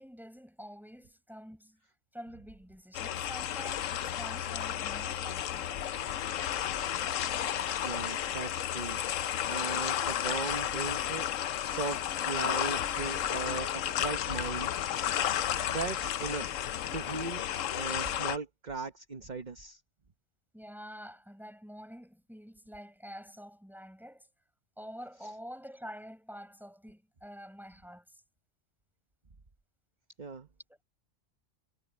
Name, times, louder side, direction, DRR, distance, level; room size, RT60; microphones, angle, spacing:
voice 1, 0.0-1.8 2.1-5.9 20.5-24.3 24.8-28.2 30.7-30.8, equal, ahead, 5.4 m, -47 dB
sound 1, 2.9-18.4, left 10 dB, 85° left, 1.1 m, -32 dB
voice 2, 7.8-9.0 9.3-11.3 11.6-14.7 15.7-16.5 16.9-17.4 17.7-19.8 30.2-30.5, right 4 dB, 35° right, 1.3 m, -38 dB
omnidirectional pair, 1.3 m